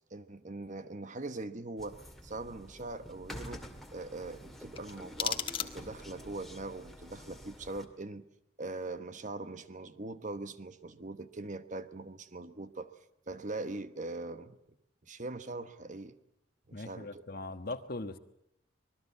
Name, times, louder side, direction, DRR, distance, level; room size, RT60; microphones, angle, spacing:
voice 1, 0.1-3.6 3.9-8.2 8.6-12.9 13.3-14.6 15.0-16.2 16.7-17.2, right 2 dB, 40° right, 11 dB, 1.1 m, -41 dB
sound 1, 1.8-7.9, equal, ahead, 2.2 m, -49 dB
sound 2, 4.7-6.2, left 7 dB, 25° left, 1.5 m, -36 dB
voice 2, 16.7-18.2, left 2 dB, 50° left, 9 dB, 1.3 m, -40 dB
26.0 x 20.5 x 8.4 m, 0.80 s
head